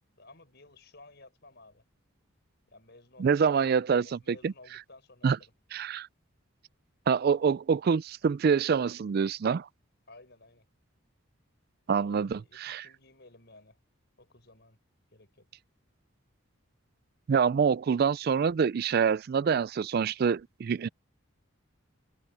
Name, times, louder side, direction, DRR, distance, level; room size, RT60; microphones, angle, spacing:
voice 1, 0.1-1.8 2.7-5.5 10.1-10.7 12.0-13.8 14.2-14.8 15.1-15.5, left 2 dB, 55° left, 7.2 m, -55 dB
voice 2, 3.2-4.5 5.2-5.4 5.7-6.1 7.1-9.7 11.9-12.8 17.3-20.9, right 6 dB, 45° right, 0.3 m, -26 dB
head